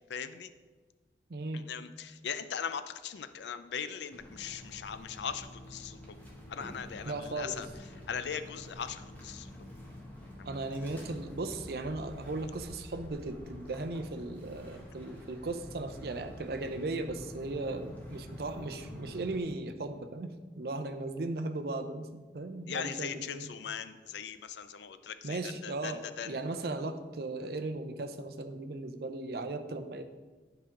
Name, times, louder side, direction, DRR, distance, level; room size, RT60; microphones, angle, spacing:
voice 1, 0.1-0.5 1.5-6.0 6.5-7.7 8.1-9.5 10.4-10.5 22.7-26.3, left 7 dB, 75° left, 12 dB, 0.4 m, -39 dB
voice 2, 1.3-1.6 7.0-7.6 10.4-23.5 25.2-30.0, right 2 dB, 60° right, 8 dB, 0.5 m, -37 dB
sound 1, 4.1-19.4, left 1 dB, 10° left, 1.3 m, -48 dB
9.9 x 4.9 x 3.8 m, 1.3 s
head